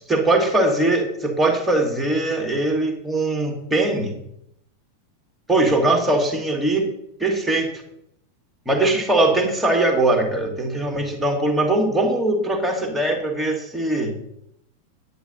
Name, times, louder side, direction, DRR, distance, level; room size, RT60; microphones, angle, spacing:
voice 1, 0.1-4.2 5.5-6.9 7.2-7.7 8.7-14.1, right 2 dB, 5° right, 2 dB, 2.2 m, -21 dB
10.5 x 10.0 x 4.0 m, 0.76 s
figure-of-eight pair, 90°, 0 cm